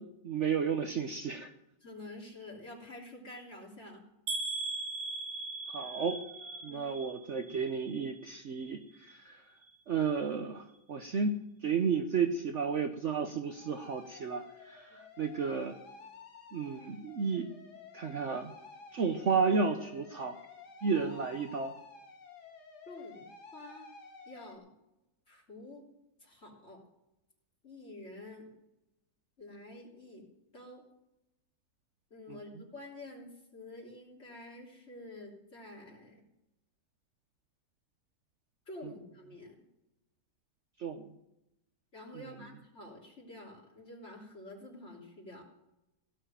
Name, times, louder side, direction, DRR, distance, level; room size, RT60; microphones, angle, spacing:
voice 1, 0.0-1.5 5.7-6.2 6.6-9.4 9.9-11.3 11.6-15.8 16.5-17.5 17.9-18.5 18.9-20.4 20.8-21.7 32.3-32.4 40.8-41.1, right 5 dB, 50° right, 5 dB, 1.0 m, -32 dB
voice 2, 1.8-4.1 6.7-6.9 14.9-15.0 22.9-23.9 24.3-24.7 25.3-25.8 26.2-26.8 27.6-28.5 29.4-30.3 30.5-30.9 32.1-36.2 38.7-39.6 41.9-45.4, left 2 dB, 40° left, -2 dB, 3.6 m, -48 dB
sound 1, 4.3-8.2 8.5-9.2 9.6-9.8 10.1-10.2, right 2 dB, 80° right, 1.9 m, -40 dB
sound 2, 5.8-7.2 13.4-24.6, left 4 dB, 70° left, 2.1 m, -53 dB
17.0 x 6.7 x 9.1 m, 0.90 s
omnidirectional pair, 1.8 m